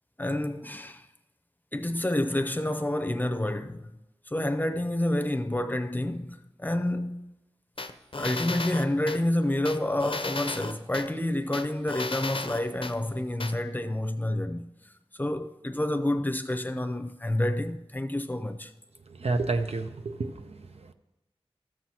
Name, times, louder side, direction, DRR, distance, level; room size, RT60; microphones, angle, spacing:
voice 1, 0.2-1.1 1.7-3.9 4.3-7.3 8.1-14.6 15.1-18.7, left 1 dB, 15° left, 0.6 m, -29 dB
sound 1, 7.8-9.2 9.6-11.1 11.5-12.9 13.4-13.5, left 3 dB, 60° left, 0.6 m, -34 dB
voice 2, 19.1-20.9, right 3 dB, 85° right, 0.6 m, -30 dB
13.5 x 7.6 x 2.9 m
wide cardioid pair, 40°, 10 cm